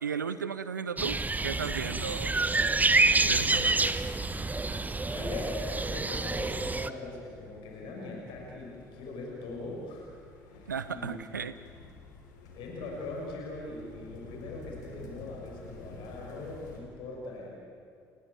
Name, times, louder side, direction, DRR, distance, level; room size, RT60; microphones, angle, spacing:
voice 1, 0.0-2.4 3.2-3.8 10.7-11.5, right 6 dB, 85° right, 13 dB, 0.5 m, -35 dB
sound 1, 1.0-6.9, right 3 dB, 15° right, 1.1 m, -27 dB
sound 2, 3.1-16.8, left 3 dB, 80° left, 3.5 m, -51 dB
voice 2, 5.1-11.2 12.5-17.6, left 2 dB, 60° left, -1 dB, 6.1 m, -41 dB
29.0 x 16.5 x 9.2 m, 2.4 s
figure-of-eight pair, 50°, 10 cm